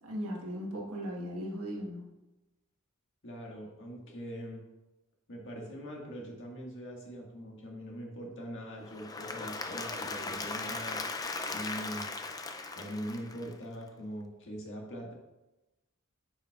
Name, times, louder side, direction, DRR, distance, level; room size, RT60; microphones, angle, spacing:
voice 1, 0.0-2.1, equal, 70° right, -2 dB, 1.5 m, -37 dB
voice 2, 3.2-4.6 5.3-11.0 11.5-12.1 12.8-15.1, equal, 60° left, -1 dB, 1.6 m, -42 dB
Applause / Crowd, 8.8-13.8, left 3 dB, 15° left, 0.3 m, -38 dB
8.8 x 5.5 x 2.4 m, 1.0 s
head